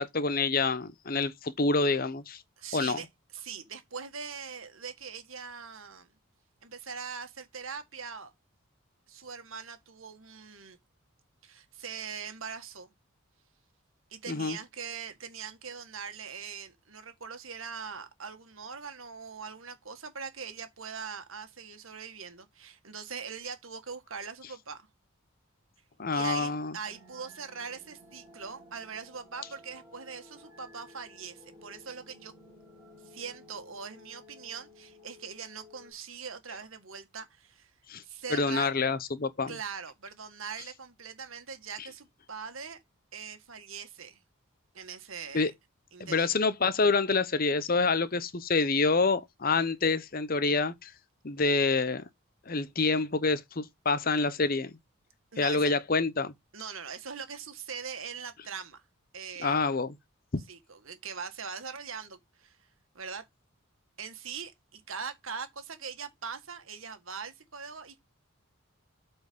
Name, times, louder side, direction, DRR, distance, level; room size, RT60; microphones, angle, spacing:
voice 1, 0.0-2.4 2.7-3.0 14.3-14.6 26.0-26.7 37.9-38.0 38.3-39.5 45.3-45.5 46.0-50.9 51.2-52.0 52.5-54.7 55.4-56.3 59.4-59.9 60.3-60.4, left 3 dB, 45° left, 0.8 m, -27 dB
voice 2, 2.6-3.1 3.3-6.1 6.6-8.3 9.1-10.8 11.4-12.9 14.1-24.9 26.1-32.3 33.0-37.7 38.0-38.7 39.5-42.8 43.1-44.2 44.7-45.5 45.9-46.3 55.3-55.7 56.5-58.8 59.1-59.7 60.5-62.6 63.0-63.3 64.0-68.0, right 6 dB, 75° right, 1.7 m, -41 dB
sound 1, 26.8-35.9, left 1 dB, 10° right, 4.8 m, -55 dB
8.2 x 4.5 x 5.3 m
head